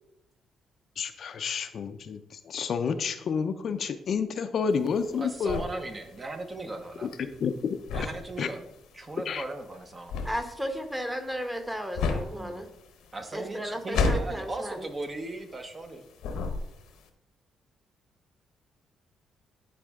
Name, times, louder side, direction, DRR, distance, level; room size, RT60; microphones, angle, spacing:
voice 1, 1.0-5.6 7.0-8.1 8.4-8.5 9.3-9.4, left 6 dB, 55° left, 9 dB, 0.5 m, -30 dB
voice 2, 4.6-7.1 7.9-8.6 8.9-10.2 12.2-12.6 13.1-16.0, right 2 dB, 30° right, 5 dB, 1.0 m, -38 dB
sound 1, 4.7-15.9 16.2-17.0, left 4 dB, 90° left, 0.9 m, -32 dB
voice 3, 10.2-12.7 13.3-14.9, equal, 5° right, 6 dB, 1.1 m, -34 dB
10.0 x 4.1 x 3.6 m, 0.84 s
cardioid pair, 90°, 0 cm